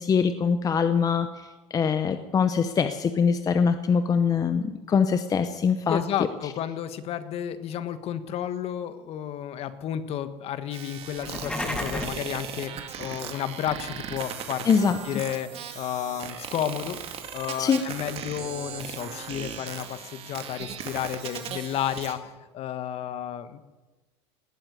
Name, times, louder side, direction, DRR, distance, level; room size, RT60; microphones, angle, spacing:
voice 1, 0.0-6.0 14.6-15.0 17.6-17.8, left 6 dB, 25° left, 10 dB, 0.8 m, -23 dB
voice 2, 5.9-23.6, left 10 dB, 45° left, 12 dB, 1.4 m, -32 dB
sound 1, 10.7-22.1, right 8 dB, 45° right, 2.3 m, -38 dB
sound 2, 11.1-12.3, left 1 dB, 5° left, 2.1 m, -32 dB
19.0 x 7.9 x 9.5 m, 1.2 s
supercardioid pair, 120°, 14 cm